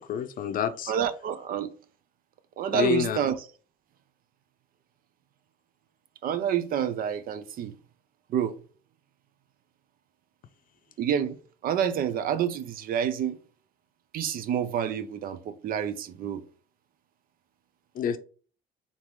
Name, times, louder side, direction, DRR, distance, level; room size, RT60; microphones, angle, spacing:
voice 1, 0.0-0.9 2.7-3.2 17.9-18.2, left 9 dB, 55° left, 0.5 m, -28 dB
voice 2, 0.9-1.7 2.6-3.4 6.2-7.7 8.3-8.5 11.0-11.4 11.6-13.4 14.1-16.4, right 9 dB, 60° right, 0.5 m, -28 dB
3.9 x 3.5 x 3.0 m
cardioid pair, 110°, 17 cm